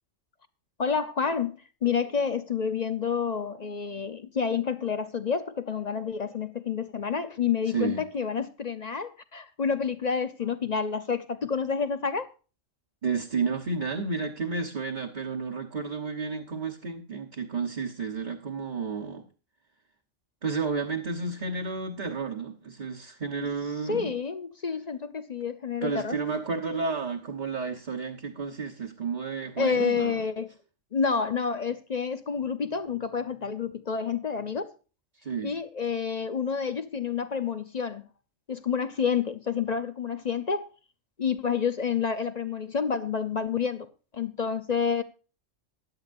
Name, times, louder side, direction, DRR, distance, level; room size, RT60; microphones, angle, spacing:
voice 1, 0.8-12.3 23.4-23.5 23.9-26.2 29.6-30.5 30.9-34.7 35.4-38.0 38.5-40.7 41.2-43.9 44.1-45.0, left 6 dB, 40° left, 0.7 m, -29 dB
voice 2, 7.7-8.0 13.0-19.3 20.4-24.1 25.8-30.2 35.2-35.5, right 4 dB, 40° right, 1.2 m, -31 dB
16.0 x 10.5 x 2.6 m
omnidirectional pair, 1.3 m